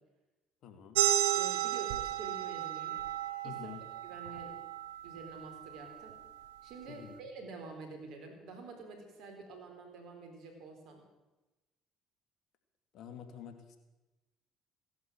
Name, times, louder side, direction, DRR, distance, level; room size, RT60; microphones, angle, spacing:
voice 1, 0.6-1.0 3.4-3.8 6.9-7.2 12.9-13.8, left 8 dB, 65° left, 7 dB, 2.2 m, -48 dB
sound 1, 0.9-6.1, right 12 dB, 85° right, 0.8 m, -33 dB
voice 2, 1.3-3.0 3.4-3.6 4.0-4.6 5.0-6.2 6.6-11.0, right 3 dB, 70° right, 4 dB, 4.0 m, -48 dB
16.5 x 11.0 x 7.5 m, 1.1 s
hypercardioid pair, 60°, 0 cm